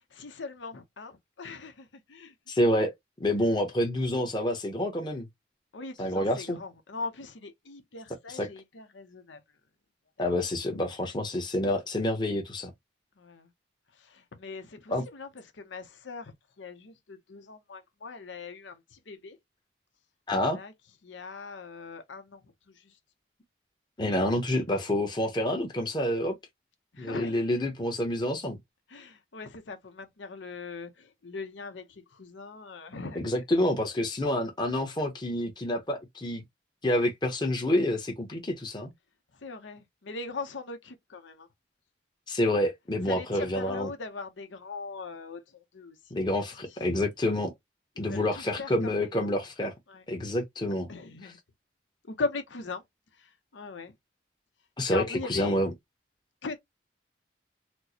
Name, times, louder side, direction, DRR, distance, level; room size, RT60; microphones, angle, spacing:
voice 1, 0.1-2.3 5.7-9.4 13.2-13.5 14.1-15.3 15.6-16.3 16.6-19.4 20.5-20.7 21.0-22.4 26.9-27.4 28.9-31.8 32.1-33.3 39.4-41.5 43.1-46.0 48.0-49.1 49.9-50.0 50.9-51.4 52.1-52.8 53.5-53.9 54.8-55.6 56.4-56.6, left 3 dB, 85° left, 0.8 m, -40 dB
voice 2, 2.5-2.9 3.2-5.3 6.0-6.6 8.3-8.5 10.2-12.7 14.9-15.0 20.3-20.6 24.0-26.3 27.0-28.6 33.1-36.4 36.8-38.9 42.3-43.9 46.1-47.5 48.0-49.7 50.1-50.9 51.2-51.3 54.8-55.7, left 1 dB, 25° left, 0.9 m, -28 dB
4.4 x 2.1 x 2.8 m
head